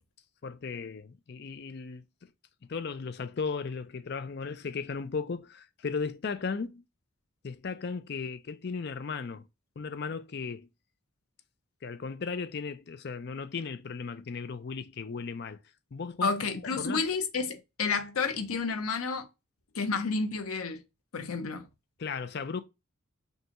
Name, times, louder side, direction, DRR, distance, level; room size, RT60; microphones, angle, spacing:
voice 1, 0.4-2.3 2.7-6.8 7.4-9.5 9.8-10.7 11.8-15.6 15.9-16.3 16.8-17.1 22.0-22.6, left 5 dB, 50° left, 0.4 m, -36 dB
voice 2, 16.2-19.3 19.7-20.8 21.1-21.7, left 4 dB, 90° left, 0.8 m, -30 dB
5.4 x 2.3 x 2.9 m
head